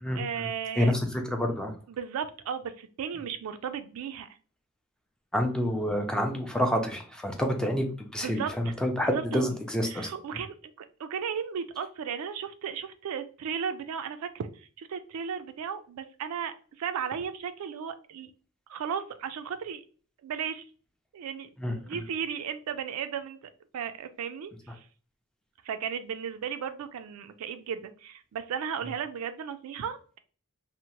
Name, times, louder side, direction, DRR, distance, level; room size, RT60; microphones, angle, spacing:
voice 1, 0.2-0.9 1.9-4.3 8.2-9.5 9.8-18.3 18.7-19.8 20.2-20.6 21.1-21.5 21.8-23.4 23.7-24.9 25.6-30.2, right 7 dB, 70° right, 10 dB, 0.3 m, -35 dB
voice 2, 0.8-1.7 5.3-10.1 21.6-21.7, equal, 5° left, 3 dB, 0.4 m, -28 dB
2.7 x 2.1 x 2.9 m, 0.41 s
head